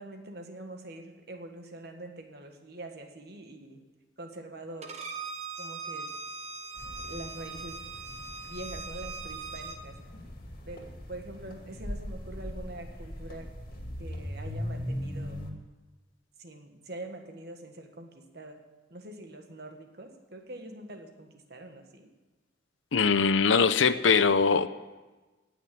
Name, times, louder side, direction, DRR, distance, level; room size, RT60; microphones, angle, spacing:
voice 1, 0.0-3.8 4.2-4.9 5.6-6.1 7.0-8.1 8.4-10.0 10.7-13.5 14.0-15.4 16.4-18.6 18.9-22.1, right 1 dB, 55° right, 4 dB, 1.6 m, -44 dB
Bowed string instrument, 4.8-9.8, right 4 dB, 35° right, 1.1 m, -40 dB
sound 1, 6.8-15.5, equal, 45° left, 2.3 m, -40 dB
voice 2, 22.9-24.7, left 5 dB, 80° left, 13 dB, 0.7 m, -22 dB
17.5 x 6.4 x 8.6 m, 1.2 s
head